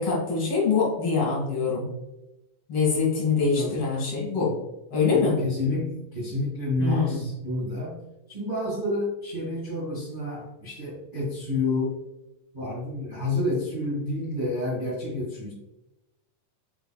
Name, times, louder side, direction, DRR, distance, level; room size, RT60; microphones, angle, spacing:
voice 1, 0.0-1.9 2.7-4.5 4.9-5.3 6.8-7.3, left 5 dB, 50° left, -4 dB, 2.3 m, -24 dB
voice 2, 5.1-8.0 8.3-12.0 12.5-15.5, left 2 dB, 40° right, -6 dB, 0.7 m, -29 dB
5.6 x 4.0 x 2.2 m, 0.95 s
omnidirectional pair, 3.8 m